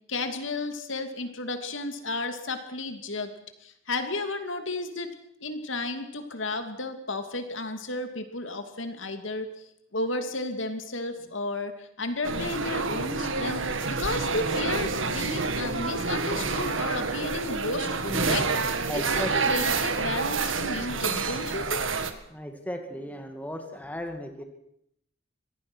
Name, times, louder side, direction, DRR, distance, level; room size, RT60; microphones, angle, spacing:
voice 1, 0.1-3.3 3.6-5.1 5.4-9.5 9.9-18.4 19.1-21.9, left 2 dB, 65° left, 7 dB, 2.7 m, -33 dB
sound 1, 12.2-22.1, right 4 dB, 70° right, 1.9 m, -28 dB
voice 2, 18.1-19.7 22.3-24.4, equal, 10° left, 4 dB, 2.3 m, -36 dB
24.5 x 19.0 x 6.3 m, 0.73 s
head